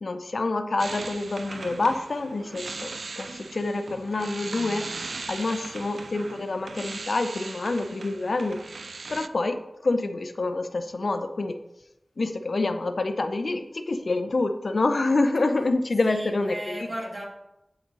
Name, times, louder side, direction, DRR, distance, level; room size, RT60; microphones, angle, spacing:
voice 1, 0.0-2.9 3.2-4.9 5.3-8.6 9.1-11.6 12.2-16.8, left 2 dB, 70° left, 8 dB, 0.6 m, -27 dB
sound 1, 0.8-9.3, right 3 dB, 80° right, 0.4 m, -39 dB
voice 2, 5.4-5.8 16.0-17.3, right 1 dB, 45° right, -1 dB, 2.2 m, -37 dB
8.2 x 6.3 x 4.0 m, 0.92 s
wide cardioid pair, 60°, 0 cm